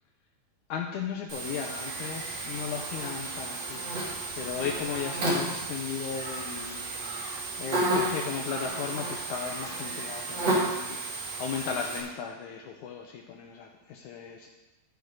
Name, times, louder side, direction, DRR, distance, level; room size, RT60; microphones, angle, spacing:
voice 1, 0.7-4.1 4.4-6.9 7.6-14.5, left 7 dB, 85° left, 1 dB, 1.7 m, -36 dB
Buzz, 1.3-12.0, right 2 dB, 45° right, 3.0 m, -32 dB
15.5 x 5.2 x 4.7 m, 1.0 s
omnidirectional pair, 4.4 m